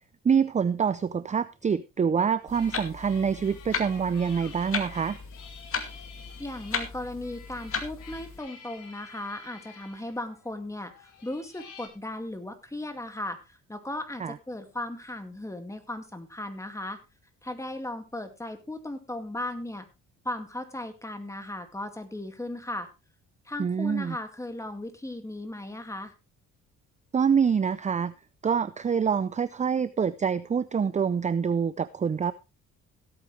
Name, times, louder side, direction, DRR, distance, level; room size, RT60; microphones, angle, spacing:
voice 1, 0.2-5.2 14.2-14.4 23.6-24.2 27.1-28.1 28.4-32.3, right 6 dB, 25° right, 16 dB, 0.5 m, -26 dB
sound 1, 2.5-11.9, left 6 dB, 75° left, 4.5 m, -50 dB
Clock, 2.5-8.4, left 5 dB, 45° left, 2.3 m, -36 dB
voice 2, 6.4-17.0 17.4-19.9 20.2-22.9 23.5-26.1, left 1 dB, 10° left, 7 dB, 2.2 m, -36 dB
16.5 x 8.8 x 3.3 m, 0.28 s
cardioid pair, 90°, 30 cm